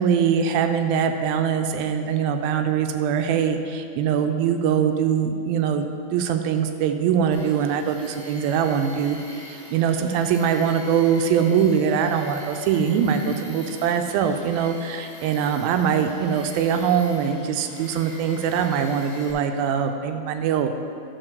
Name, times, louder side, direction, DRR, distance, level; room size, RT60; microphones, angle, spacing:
voice 1, 0.0-20.7, right 7 dB, 80° right, 7 dB, 2.3 m, -22 dB
Tools, 7.3-19.3, left 1 dB, 45° left, 2.2 m, -43 dB
11.0 x 4.1 x 6.5 m, 2.5 s
omnidirectional pair, 4.4 m